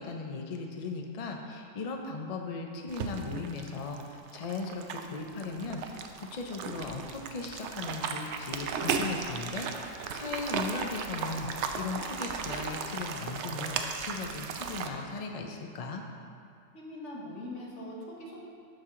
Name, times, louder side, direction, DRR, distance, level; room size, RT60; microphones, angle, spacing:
voice 1, 0.0-16.0, left 3 dB, 45° left, 3 dB, 0.5 m, -37 dB
sound 1, 2.9-14.9, right 5 dB, 70° right, 0.8 m, -36 dB
voice 2, 16.7-18.4, left 1 dB, 70° left, -3 dB, 1.6 m, -42 dB
12.5 x 4.6 x 3.7 m, 2.4 s
omnidirectional pair, 1.3 m